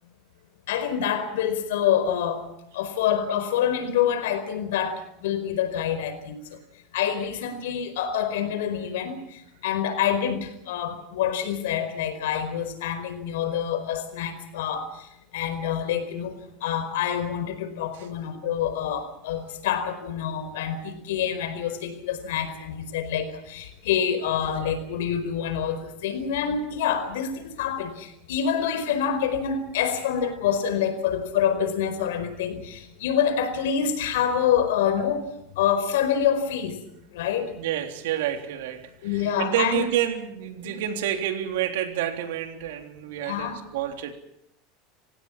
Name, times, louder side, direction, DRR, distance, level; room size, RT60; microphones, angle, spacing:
voice 1, 0.7-2.4 2.7-6.4 6.9-15.1 15.3-16.3 16.6-35.2 35.6-36.8 37.1-37.5 39.0-39.9 40.6-40.7 43.2-43.6, left 8 dB, 90° left, 10 dB, 4.6 m, -26 dB
voice 2, 37.6-38.8 39.1-44.1, right 11 dB, 85° right, 5 dB, 3.5 m, -28 dB
27.0 x 17.5 x 7.4 m, 0.80 s
supercardioid pair, 140°, 0 cm